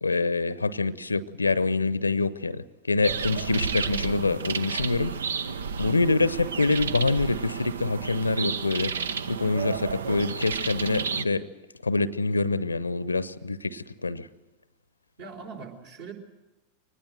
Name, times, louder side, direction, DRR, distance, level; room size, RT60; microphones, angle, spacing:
voice 1, 0.0-5.1 5.8-8.9 9.3-11.5 11.8-14.3, left 3 dB, 80° left, 19 dB, 0.8 m, -26 dB
sound 1, 3.0-11.2, right 6 dB, 65° right, 0.8 m, -32 dB
voice 2, 3.5-4.0 15.2-16.1, right 4 dB, 50° right, 4 dB, 4.2 m, -43 dB
24.0 x 19.5 x 7.9 m, 1.0 s
figure-of-eight pair, 90°, 0 cm